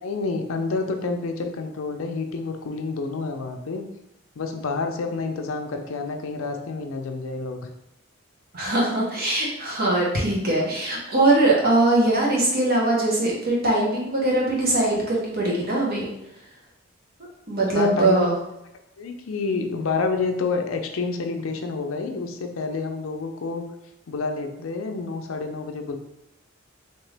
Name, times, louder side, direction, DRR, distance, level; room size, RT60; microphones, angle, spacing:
voice 1, 0.0-3.8 4.4-7.6 17.7-18.3 19.0-23.6 24.1-26.0, left 4 dB, 75° left, 5 dB, 0.5 m, -28 dB
voice 2, 8.5-16.1 17.5-18.4, right 2 dB, 45° right, -3 dB, 1.1 m, -21 dB
3.7 x 2.9 x 3.3 m, 0.83 s
head